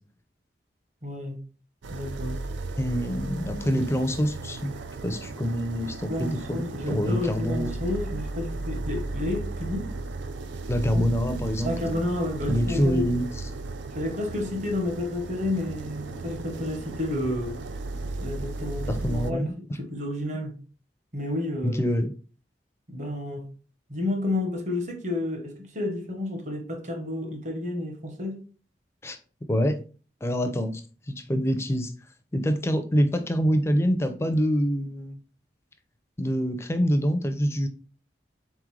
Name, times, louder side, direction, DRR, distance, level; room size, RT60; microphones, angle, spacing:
voice 1, 1.0-1.4 1.9-2.5 3.6-3.9 6.1-9.9 10.9-11.1 11.6-13.1 13.9-17.6 18.2-20.6 21.1-21.8 22.9-23.5 23.9-28.4, left 2 dB, 40° right, 0.9 m, -31 dB
sound 1, 1.8-19.3, right 3 dB, 85° right, 0.4 m, -35 dB
voice 2, 2.8-4.7 5.0-6.6 6.9-7.7 10.7-12.0 12.5-13.2 18.9-19.5 21.6-22.1 29.0-29.2 29.5-29.8 30.2-30.8 31.1-31.9 32.3-35.2 36.2-37.7, equal, 15° left, 0.4 m, -25 dB
4.0 x 3.7 x 3.1 m
head